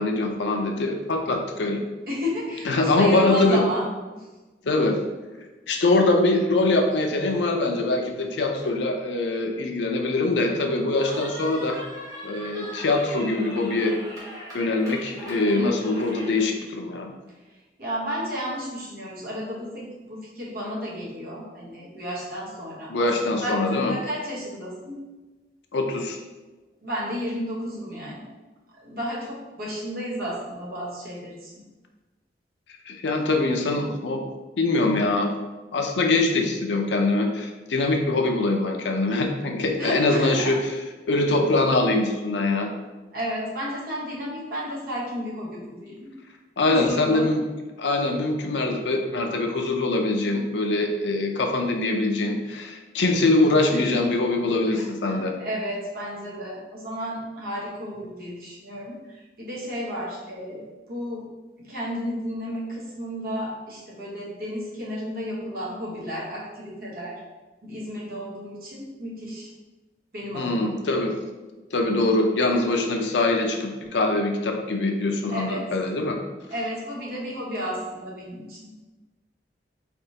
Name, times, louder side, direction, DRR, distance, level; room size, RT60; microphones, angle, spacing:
voice 1, 0.0-1.8 2.6-3.6 4.6-5.0 5.7-11.8 12.2-14.0 14.5-17.1 22.9-23.9 25.7-26.2 32.9-34.2 34.6-35.3 35.7-40.6 41.1-42.7 46.6-47.4 47.8-55.4 70.3-71.2 71.7-76.2, left 2 dB, 90° left, 3 dB, 0.6 m, -23 dB
voice 2, 2.1-4.3 17.8-25.0 26.8-28.2 28.8-31.6 39.8-40.6 43.1-46.1 46.6-47.3 53.7-54.0 55.1-61.2 61.7-67.2 67.6-69.5 70.1-70.7 75.3-75.6 76.5-78.6, equal, 55° right, -5 dB, 1.1 m, -32 dB
Cheering, 11.0-16.5, equal, 20° right, 1.2 m, -40 dB
4.1 x 3.4 x 2.8 m, 1.2 s
head